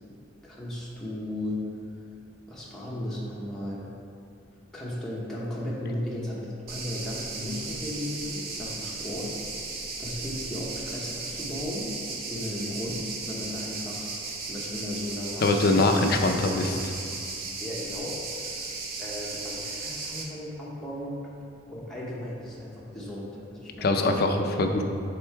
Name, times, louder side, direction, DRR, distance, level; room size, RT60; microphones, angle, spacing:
voice 1, 0.4-1.6 2.5-3.8 4.7-9.3 10.0-14.1 14.5-16.0 17.6-18.6 19.0-21.2 21.7-24.0, left 1 dB, 5° left, -7 dB, 0.8 m, -35 dB
sound 1, 6.7-20.2, right 3 dB, 55° right, 0.7 m, -36 dB
voice 2, 15.4-16.9 23.8-24.8, left 2 dB, 55° left, 4 dB, 0.5 m, -23 dB
6.7 x 3.7 x 4.5 m, 2.5 s
head